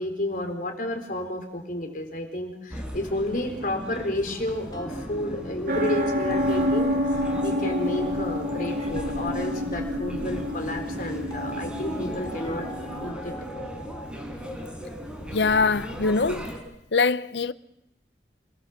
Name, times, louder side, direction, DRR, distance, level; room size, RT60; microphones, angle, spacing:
voice 1, 0.0-13.3, left 1 dB, 50° left, 4.3 m, -31 dB
sound 1, 2.7-16.6, equal, 5° right, 5.3 m, -37 dB
sound 2, 4.7-14.1, right 1 dB, 20° left, 2.2 m, -41 dB
sound 3, 5.7-13.1, left 1 dB, 55° right, 3.7 m, -28 dB
voice 2, 15.3-16.5 16.9-17.5, left 4 dB, 80° left, 0.8 m, -23 dB
27.5 x 20.0 x 7.4 m
head